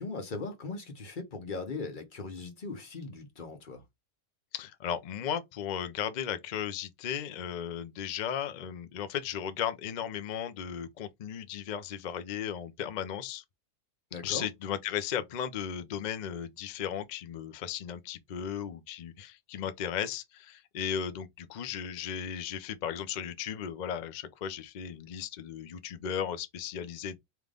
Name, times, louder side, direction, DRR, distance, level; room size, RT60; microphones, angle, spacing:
voice 1, 0.0-3.8 14.1-14.5, left 3 dB, 35° left, 1.1 m, -39 dB
voice 2, 4.5-13.4 14.2-27.2, left 9 dB, 75° left, 0.4 m, -36 dB
3.4 x 3.1 x 3.7 m
omnidirectional pair, 1.5 m